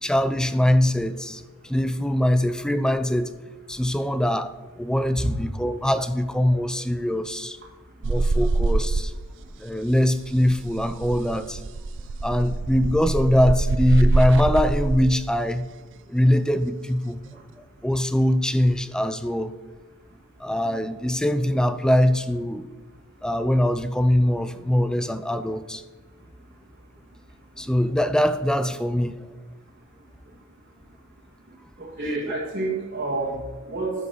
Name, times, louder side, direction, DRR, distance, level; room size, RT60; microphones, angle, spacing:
voice 1, 0.0-3.3 3.7-7.6 8.0-9.1 9.6-11.6 12.2-15.7 16.1-17.2 17.6-19.5 20.4-22.7 23.2-25.8 27.6-29.2, left 1 dB, 5° left, 0.4 m, -22 dB
sound 1, 8.0-9.5 9.7-15.2 16.9-17.3, right 3 dB, 60° right, 0.5 m, -24 dB
voice 2, 31.8-33.9, right 2 dB, 40° right, 1.8 m, -28 dB
11.0 x 5.3 x 6.6 m
head